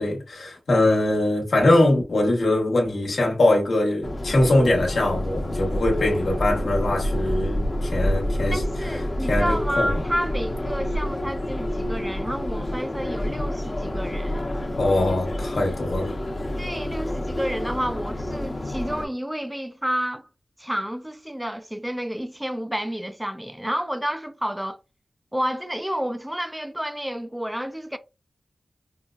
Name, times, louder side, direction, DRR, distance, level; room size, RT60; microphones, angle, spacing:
voice 1, 0.0-8.6 9.3-9.9 14.8-16.2, left 1 dB, 85° left, 1.1 m, -22 dB
Subway metro underground, 4.0-19.0, left 1 dB, 40° left, 0.8 m, -28 dB
voice 2, 8.5-14.5 16.6-20.3 20.6-24.8 25.3-28.0, equal, 10° right, 0.4 m, -30 dB
5.4 x 2.2 x 2.4 m
wide cardioid pair, 80°, 0 cm